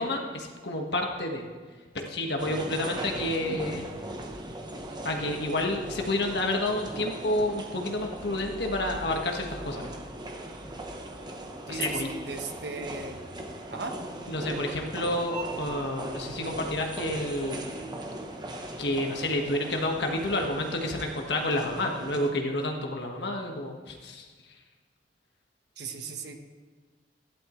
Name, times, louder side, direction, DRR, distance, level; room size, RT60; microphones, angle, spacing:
voice 1, 0.0-1.4 1.9-3.8 5.0-9.9 11.7-12.1 14.3-17.7 18.8-24.3, left 1 dB, 65° left, 2 dB, 1.6 m, -30 dB
sound 1, 2.4-22.3, right 1 dB, 25° right, 1.0 m, -39 dB
voice 2, 11.7-13.2 13.7-14.0 25.8-26.3, right 4 dB, 65° right, 5 dB, 1.2 m, -36 dB
15.0 x 11.0 x 3.2 m, 1.5 s
head